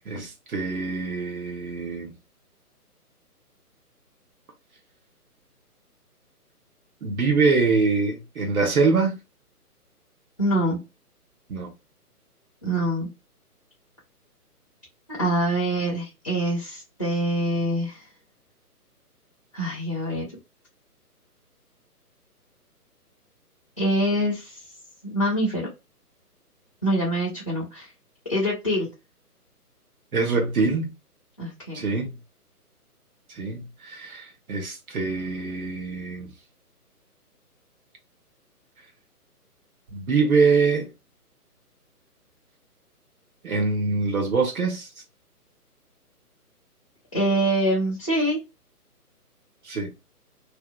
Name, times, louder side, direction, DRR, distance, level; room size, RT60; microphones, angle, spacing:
voice 1, 0.0-2.1 7.0-9.2 11.5-11.7 30.1-30.9 31.7-32.1 33.3-36.3 39.9-40.9 43.4-44.9 49.6-50.0, right 4 dB, 65° right, 0.7 m, -24 dB
voice 2, 10.4-10.8 12.6-13.1 15.2-18.0 19.5-20.3 23.8-24.6 25.0-25.7 26.8-27.9 28.3-28.9 31.4-31.8 47.1-48.4, right 1 dB, 20° left, 0.4 m, -25 dB
2.6 x 2.1 x 2.2 m
figure-of-eight pair, 145°, 47 cm